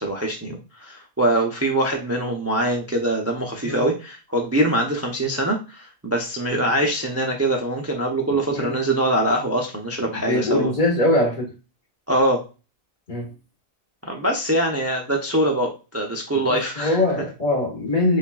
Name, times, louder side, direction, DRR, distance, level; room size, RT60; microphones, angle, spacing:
voice 1, 0.0-10.7 12.1-12.4 14.0-17.0, right 1 dB, 20° right, 2 dB, 0.4 m, -23 dB
voice 2, 8.3-8.8 10.1-11.5 13.1-13.3 16.3-18.2, left 1 dB, 45° left, -1 dB, 1.5 m, -23 dB
5.6 x 2.5 x 2.3 m, 0.31 s
omnidirectional pair, 1.1 m